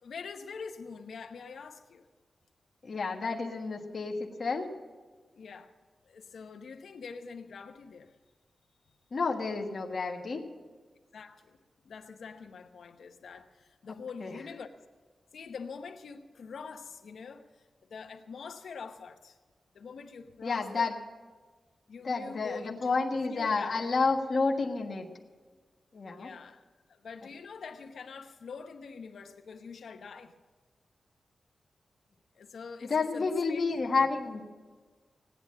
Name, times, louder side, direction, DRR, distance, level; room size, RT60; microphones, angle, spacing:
voice 1, 0.0-2.1 5.4-5.7 6.0-8.2 11.1-11.6 11.8-14.7 15.3-17.4 17.9-19.4 19.7-20.9 21.9-23.8 26.1-30.4 32.3-33.6, left 5 dB, 90° left, 5 dB, 1.0 m, -45 dB
voice 2, 2.8-4.7 9.1-10.4 14.2-14.4 20.4-21.0 22.0-25.1 25.9-26.3 32.8-34.4, left 4 dB, 45° left, 1 dB, 1.4 m, -30 dB
16.5 x 10.0 x 7.4 m, 1.5 s
wide cardioid pair, 165°, 0 cm